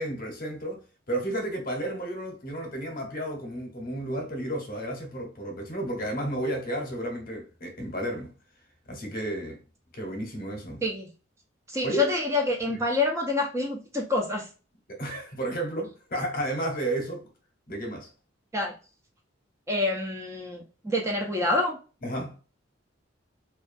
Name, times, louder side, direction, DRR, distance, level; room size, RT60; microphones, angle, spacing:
voice 1, 0.0-8.3 8.9-9.6 9.9-10.8 11.8-12.1 12.7-12.8 14.9-17.2 17.7-18.1 22.0-22.4, right 1 dB, 50° left, 0.8 m, -32 dB
voice 2, 11.7-14.5 18.5-18.7 19.7-21.8, left 2 dB, 15° right, 0.4 m, -27 dB
2.3 x 2.3 x 2.4 m
head